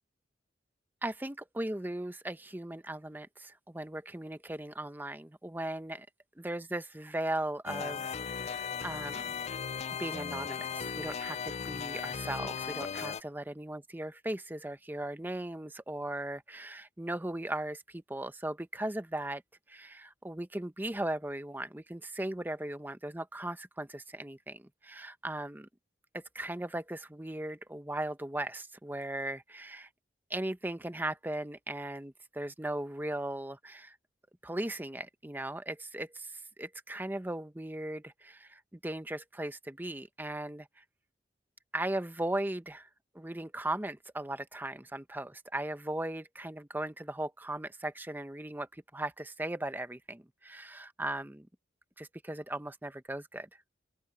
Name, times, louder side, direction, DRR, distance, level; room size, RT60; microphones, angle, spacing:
voice 1, 1.0-6.1 6.4-9.4 10.0-19.4 19.7-25.7 26.1-29.9 30.3-34.0 34.4-40.7 41.7-42.9 43.1-51.5 52.0-53.5, right 1 dB, 10° right, 0.8 m, -38 dB
sound 1, 7.7-13.2, left 6 dB, 40° left, 0.4 m, -37 dB
open air
head